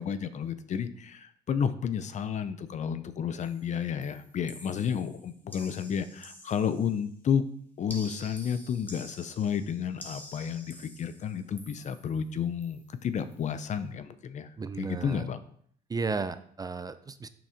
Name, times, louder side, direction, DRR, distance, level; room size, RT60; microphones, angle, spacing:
voice 1, 0.0-7.4 7.8-14.5 14.8-15.4, left 7 dB, 45° left, 13 dB, 0.7 m, -31 dB
sound 1, 3.4-3.7 4.0-7.1 7.9-12.2 12.6-12.9 13.2-13.4, left 1 dB, 10° left, 1.7 m, -49 dB
voice 2, 14.6-15.3 15.9-17.3, right 4 dB, 20° right, 12 dB, 0.5 m, -34 dB
7.0 x 6.1 x 5.1 m, 0.63 s
cardioid pair, 110°, 17 cm